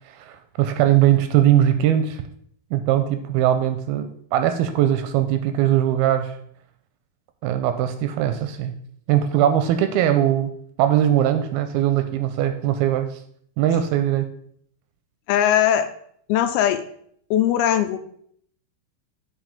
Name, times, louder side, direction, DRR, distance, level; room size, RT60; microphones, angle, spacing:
voice 1, 0.1-2.2 2.7-6.4 7.4-8.8 9.1-10.5 10.8-13.2 13.6-14.3, right 11 dB, 80° right, 9 dB, 2.3 m, -20 dB
voice 2, 15.3-15.9 16.3-16.8 17.3-18.0, left 10 dB, 80° left, 9 dB, 2.4 m, -19 dB
8.0 x 4.3 x 5.2 m, 0.65 s
omnidirectional pair, 4.5 m